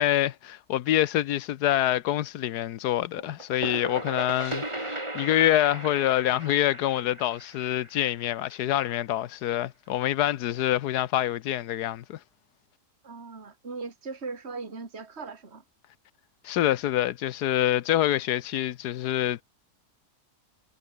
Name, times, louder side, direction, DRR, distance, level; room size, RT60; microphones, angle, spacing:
voice 1, 0.0-12.2 16.4-19.4, left 13 dB, 85° left, 1.3 m, -26 dB
sound 1, 3.2-8.7, right 1 dB, 20° right, 3.3 m, -37 dB
voice 2, 13.0-15.6, right 4 dB, 40° right, 2.8 m, -39 dB
omnidirectional pair, 1.7 m